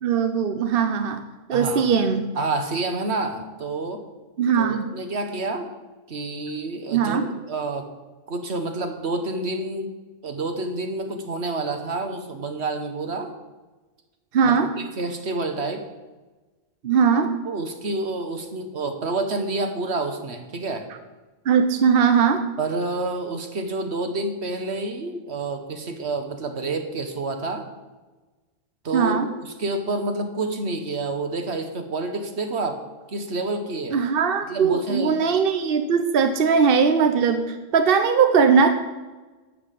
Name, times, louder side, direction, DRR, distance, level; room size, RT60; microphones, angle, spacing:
voice 1, 0.0-1.2 1.5-2.3 4.4-4.9 6.9-7.3 14.3-14.7 16.8-17.3 21.5-22.5 28.9-29.3 33.9-38.7, right 6 dB, 60° right, 7 dB, 1.0 m, -20 dB
voice 2, 1.5-1.9 2.3-4.0 4.6-5.7 6.1-7.2 7.5-7.9 8.3-9.9 10.2-13.3 14.4-15.8 17.4-20.9 22.6-27.7 28.8-32.8 33.1-34.0 34.5-35.2, right 2 dB, 85° right, 6 dB, 1.6 m, -28 dB
12.5 x 5.7 x 8.4 m, 1.2 s
omnidirectional pair, 1.1 m